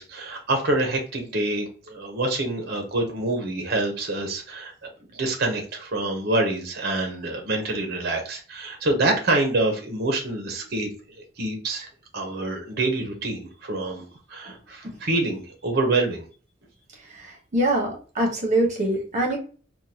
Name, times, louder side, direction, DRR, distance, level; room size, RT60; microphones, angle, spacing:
voice 1, 0.0-4.7 5.1-10.9 11.4-11.9 12.1-16.3, right 2 dB, 55° right, 3 dB, 0.8 m, -26 dB
voice 2, 17.1-19.4, right 1 dB, 40° right, 0 dB, 1.1 m, -24 dB
3.7 x 2.3 x 2.8 m, 0.39 s
head